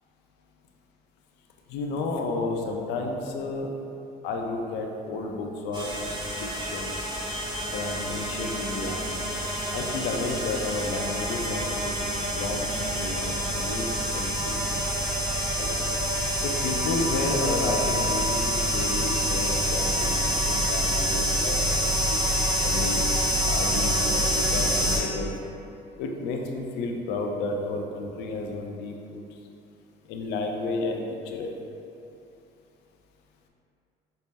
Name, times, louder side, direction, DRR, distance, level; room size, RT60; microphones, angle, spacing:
voice 1, 1.7-3.7 4.2-6.1 6.4-6.9 7.7-9.0 9.7-11.9 12.3-13.9 14.1-14.7 15.6-15.9 16.4-22.2 22.6-23.1 23.4-25.3 26.0-29.2 30.1-31.5, left 3 dB, 85° left, 2 dB, 0.5 m, -32 dB
sound 1, 5.7-25.0, equal, 25° right, 1.0 m, -27 dB
5.2 x 2.0 x 3.3 m, 2.7 s
cardioid pair, 110°, 17 cm